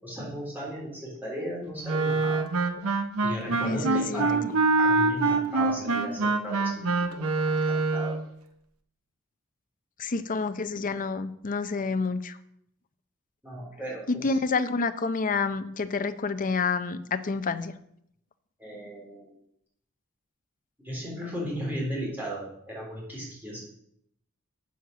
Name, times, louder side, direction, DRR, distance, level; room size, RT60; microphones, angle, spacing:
voice 1, 0.0-2.4 3.2-4.5 4.8-6.9 7.2-8.2 10.8-10.9 13.4-14.4 18.6-19.3 20.8-23.6, equal, 10° right, -4 dB, 3.8 m, -36 dB
Wind instrument woodwind instrument, 1.9-8.2, right 3 dB, 85° right, 0.9 m, -25 dB
voice 2, 3.6-4.3 10.0-12.4 14.1-17.7, left 4 dB, 40° left, 11 dB, 0.6 m, -28 dB
7.9 x 6.4 x 6.8 m, 0.73 s
head